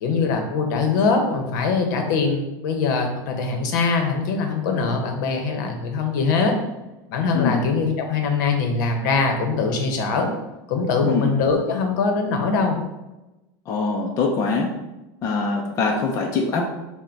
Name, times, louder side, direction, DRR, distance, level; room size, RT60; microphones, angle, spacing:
voice 1, 0.0-6.5 7.1-10.3 10.7-12.8, left 4 dB, 65° left, 4 dB, 0.8 m, -22 dB
voice 2, 13.7-14.7 15.2-16.6, left 4 dB, 30° left, 0 dB, 0.4 m, -23 dB
3.9 x 2.1 x 4.4 m, 1.0 s
supercardioid pair, 155°, 11 cm